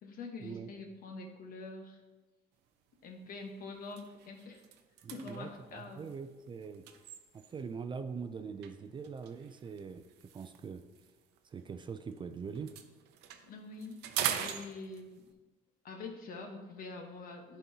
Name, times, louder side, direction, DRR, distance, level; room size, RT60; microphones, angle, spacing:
voice 1, 0.0-2.0 3.0-4.6 5.1-6.0 13.4-14.0 14.4-15.3 15.8-17.6, left 3 dB, 60° left, 3 dB, 1.1 m, -45 dB
sound 1, 2.7-2.9 3.3-3.5 3.8-7.8 8.6-12.2 12.5-15.3, right 9 dB, 85° right, 0.6 m, -42 dB
voice 2, 5.0-6.8 7.3-10.0 10.3-10.8 11.5-12.7, right 5 dB, 30° right, 9 dB, 0.4 m, -42 dB
10.5 x 4.2 x 2.8 m, 1.2 s
cardioid pair, 110°, 17 cm